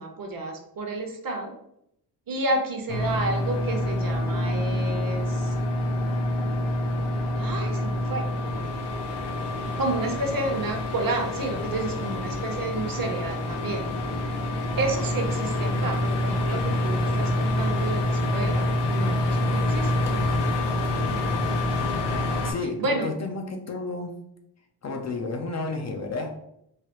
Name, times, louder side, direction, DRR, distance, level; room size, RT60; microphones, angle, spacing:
voice 1, 0.0-1.5 2.3-5.5 7.4-8.3 9.8-13.9 14.8-20.1 22.8-23.1, right 2 dB, 50° right, 2 dB, 0.7 m, -30 dB
sound 1, 2.9-22.5, left 1 dB, 75° left, 0.7 m, -26 dB
voice 2, 22.4-24.1 24.8-26.3, left 3 dB, 40° left, 3 dB, 0.4 m, -31 dB
3.2 x 2.3 x 2.9 m, 0.76 s
cardioid pair, 105°, 43 cm